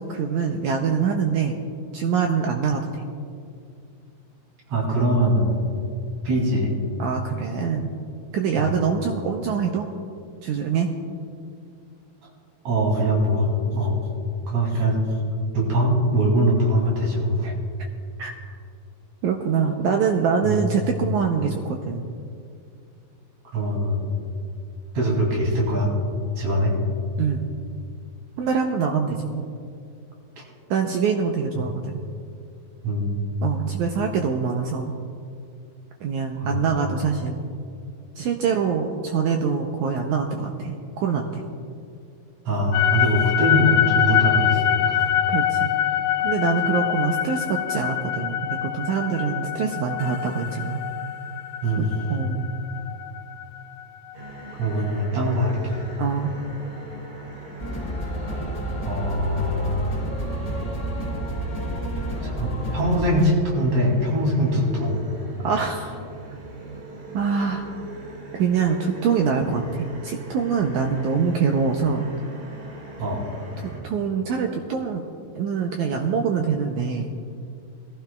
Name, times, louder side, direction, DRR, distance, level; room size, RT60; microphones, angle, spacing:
voice 1, 0.0-1.5 1.9-3.1 7.0-7.9 8.3-9.9 10.4-10.9 17.4-17.6 18.2-18.3 19.2-22.1 27.2-27.5 28.4-29.5 30.7-32.0 33.4-34.9 36.0-37.4 38.2-41.4 45.3-45.7 46.2-50.8 51.8-52.4 56.0-56.3 65.4-66.0 67.1-67.7 68.3-72.1 73.6-75.0 75.4-77.1, right 6 dB, 85° right, 2 dB, 1.7 m, -24 dB
voice 2, 4.7-5.7 6.2-6.7 8.6-8.7 12.6-14.0 14.5-15.0 15.5-17.5 20.4-20.7 23.5-24.1 24.9-25.9 26.4-26.7 32.8-33.2 36.4-36.6 42.5-45.1 51.6-52.1 54.6-55.8 58.8-59.9 62.2-65.0 73.0-73.2, equal, 50° right, -2 dB, 3.9 m, -22 dB
sound 1, 42.7-54.9, left 10 dB, 80° left, 2.5 m, -24 dB
sound 2, 54.1-73.8, right 3 dB, 65° right, 3.7 m, -40 dB
sound 3, 57.6-63.2, right 1 dB, 45° left, 0.4 m, -30 dB
21.0 x 14.5 x 2.3 m, 2.4 s
omnidirectional pair, 4.2 m